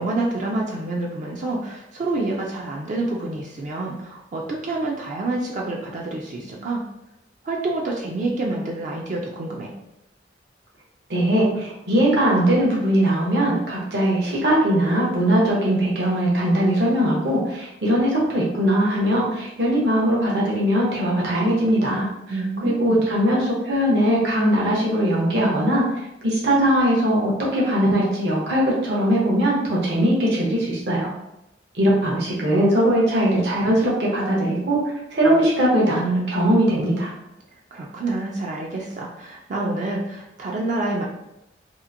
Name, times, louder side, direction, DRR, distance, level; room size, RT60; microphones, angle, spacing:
voice 1, 0.0-6.8 7.4-9.7 22.3-23.1 37.7-41.1, right 2 dB, 45° right, -2 dB, 0.4 m, -27 dB
voice 2, 11.1-22.1 22.6-25.9 26.2-31.1 31.8-34.8 35.1-37.1, right 1 dB, 70° right, -4 dB, 0.8 m, -20 dB
2.8 x 2.4 x 2.5 m, 0.87 s
head